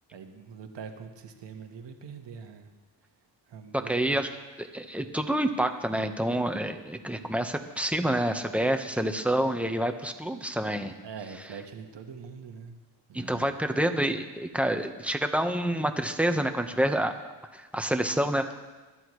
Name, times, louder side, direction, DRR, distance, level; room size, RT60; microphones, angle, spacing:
voice 1, 0.1-2.7 3.5-4.2 11.0-12.8 13.1-13.5, right 6 dB, 70° right, 4 dB, 1.6 m, -43 dB
voice 2, 3.7-4.3 4.6-10.9 13.1-17.1 17.5-18.5, right 1 dB, 5° right, 6 dB, 1.2 m, -28 dB
21.5 x 11.5 x 3.2 m, 1.2 s
cardioid pair, 70°, 44 cm